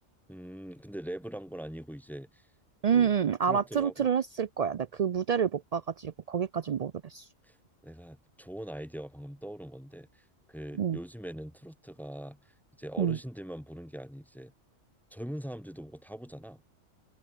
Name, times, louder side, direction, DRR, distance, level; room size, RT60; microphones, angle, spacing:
voice 1, 0.3-2.5 2.9-3.1 3.5-4.1 7.4-7.6 7.8-14.5 15.1-16.6, right 1 dB, ahead, 0.9 m, -42 dB
voice 2, 2.8-7.3 10.8-11.0 13.0-13.2, right 7 dB, 75° right, 0.3 m, -28 dB
omnidirectional pair, 1.3 m